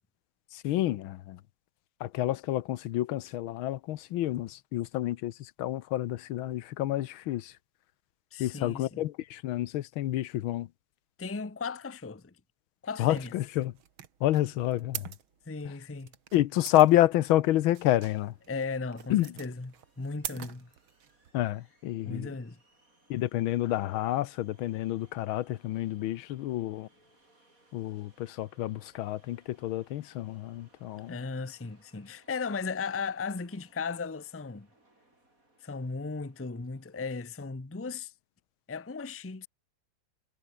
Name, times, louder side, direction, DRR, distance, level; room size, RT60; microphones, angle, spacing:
voice 1, 0.5-1.4 2.0-7.6 8.4-10.7 13.0-13.8 14.2-15.1 15.6-15.8 16.3-18.3 19.1-19.3 21.3-22.3 23.1-26.9 27.7-31.2, left 14 dB, 85° left, 1.6 m, -29 dB
voice 2, 8.3-9.0 11.2-12.3 12.8-13.3 15.5-16.1 18.5-19.7 20.0-20.7 22.1-22.6 31.1-34.7 35.6-38.1 38.7-39.5, left 4 dB, 15° left, 0.5 m, -36 dB
sound 1, 13.2-21.3, right 9 dB, 85° right, 2.2 m, -44 dB
sound 2, 17.4-37.3, right 2 dB, 40° right, 7.2 m, -67 dB
omnidirectional pair, 2.2 m